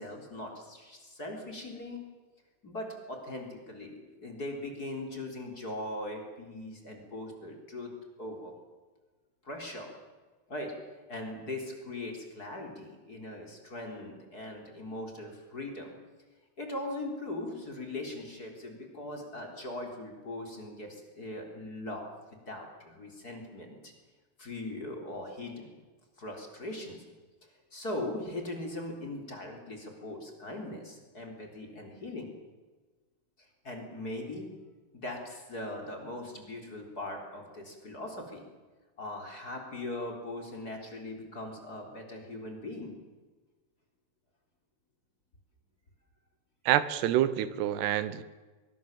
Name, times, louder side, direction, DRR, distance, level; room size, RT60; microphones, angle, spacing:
voice 1, 0.0-2.0 2.6-7.9 8.2-8.5 9.4-9.9 10.5-10.7 11.1-16.0 16.6-22.1 22.5-23.9 24.4-25.7 26.2-27.0 27.7-32.3 33.6-34.5 34.9-38.4 39.0-43.0, left 1 dB, 25° left, 2 dB, 3.8 m, -40 dB
voice 2, 46.7-48.2, right 12 dB, 90° right, 14 dB, 3.2 m, -27 dB
23.5 x 22.5 x 7.4 m, 1.3 s
omnidirectional pair, 4.6 m